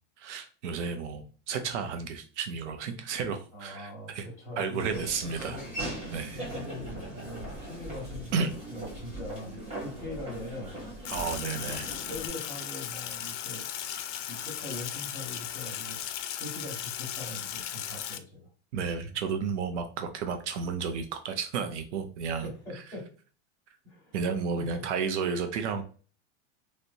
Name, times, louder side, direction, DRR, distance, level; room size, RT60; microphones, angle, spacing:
voice 1, 0.2-4.3 4.6-5.6 6.1-6.4 8.3-8.5 11.1-11.9 18.7-22.8 24.1-25.8, right 5 dB, 70° right, 6 dB, 0.6 m, -32 dB
voice 2, 3.5-5.1 5.4-5.7 6.3-10.8 11.5-13.7 14.3-16.0 16.3-18.5 22.3-23.1 23.8-24.2 24.6-24.9, left 1 dB, 10° left, -6 dB, 1.7 m, -42 dB
Laughter / Walk footsteps, 4.8-12.3, right 1 dB, 20° right, 1.5 m, -40 dB
Sink (filling or washing), 11.0-18.2, left 10 dB, 75° left, 0.5 m, -37 dB
3.2 x 3.0 x 2.7 m, 0.39 s
supercardioid pair, 170°, 36 cm